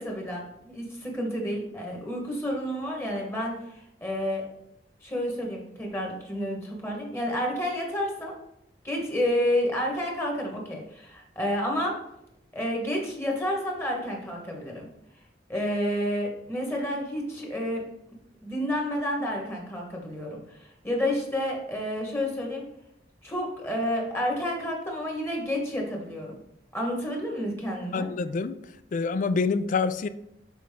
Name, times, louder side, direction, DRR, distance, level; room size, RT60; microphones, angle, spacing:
voice 1, 0.0-4.4 5.0-8.3 8.8-12.0 12.5-14.9 15.5-17.8 18.4-22.6 23.2-26.3 26.7-28.1, equal, 15° left, 0 dB, 1.3 m, -30 dB
voice 2, 27.9-28.5 28.9-30.1, left 4 dB, 45° left, 14 dB, 0.3 m, -26 dB
6.2 x 4.3 x 3.6 m, 0.80 s
head